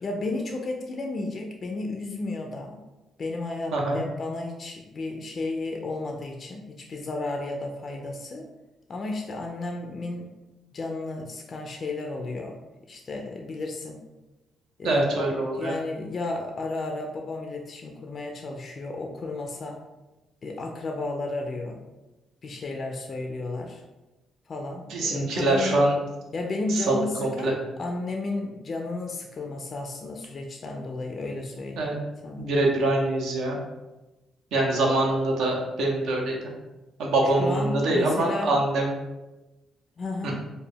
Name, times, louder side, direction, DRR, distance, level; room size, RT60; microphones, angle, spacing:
voice 1, 0.0-2.8 3.2-8.5 8.9-10.3 10.7-12.6 12.9-14.0 14.8-19.8 20.4-21.8 22.4-23.8 24.5-25.8 26.3-31.9 32.2-32.5 37.2-38.6 40.0-40.4, left 2 dB, 45° left, 2 dB, 0.3 m, -33 dB
voice 2, 3.7-4.0 14.8-15.7 24.9-26.0 26.7-27.5 31.8-31.9 32.4-33.6 34.5-36.4 37.0-38.9 40.2-40.4, right 2 dB, 80° right, -1 dB, 0.6 m, -24 dB
2.3 x 2.1 x 3.3 m, 1.1 s
cardioid pair, 90°, 0 cm